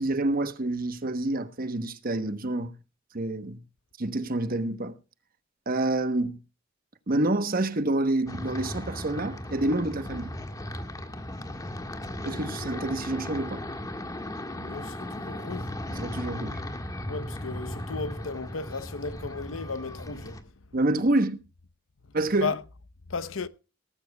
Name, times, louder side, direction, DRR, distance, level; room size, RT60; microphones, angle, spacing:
voice 1, 0.0-2.7 3.1-3.6 4.0-4.9 5.7-6.4 7.1-10.3 12.2-13.6 15.9-16.6 20.7-21.4 22.1-22.5, right 2 dB, 45° right, 1.1 m, -27 dB
sound 1, 8.3-20.4, left 1 dB, 20° left, 1.6 m, -36 dB
voice 2, 14.6-15.8 17.1-20.5 22.4-22.6 23.1-23.5, left 4 dB, 90° left, 0.8 m, -35 dB
18.5 x 15.0 x 2.3 m
head